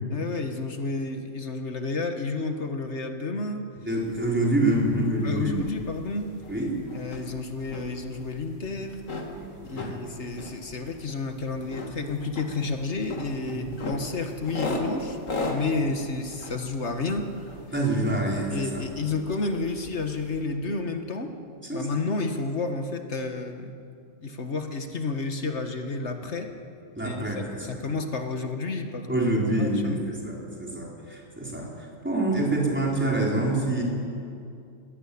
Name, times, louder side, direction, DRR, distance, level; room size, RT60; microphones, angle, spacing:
voice 1, 0.1-3.6 5.2-6.3 6.9-9.0 9.7-15.2 15.5-17.3 18.5-21.3 21.7-23.7 24.2-26.5 27.0-29.1 29.6-30.0, left 3 dB, 60° left, 5 dB, 1.9 m, -31 dB
voice 2, 3.9-5.6 6.5-6.7 9.3-9.5 9.8-10.0 13.5-13.7 17.7-18.8 21.6-21.9 26.9-27.8 29.1-31.7 32.0-33.8, right 1 dB, 10° right, -3 dB, 4.3 m, -26 dB
sound 1, 4.0-20.5, left 2 dB, 85° left, 2.6 m, -38 dB
21.0 x 17.5 x 8.6 m, 2.5 s
omnidirectional pair, 1.3 m